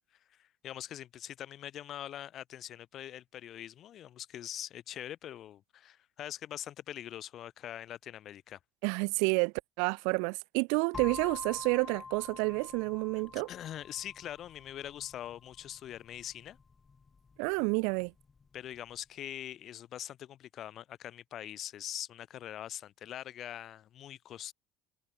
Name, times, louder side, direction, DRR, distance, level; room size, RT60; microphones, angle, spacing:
voice 1, 0.3-8.6 13.2-16.6 18.5-24.5, left 11 dB, 55° left, 6.2 m, -43 dB
voice 2, 8.8-13.5 17.4-18.1, right 38 dB, 80° right, 1.2 m, -30 dB
sound 1, 10.9-18.8, left 5 dB, 30° left, 3.1 m, -48 dB
supercardioid pair, 75°, 0 cm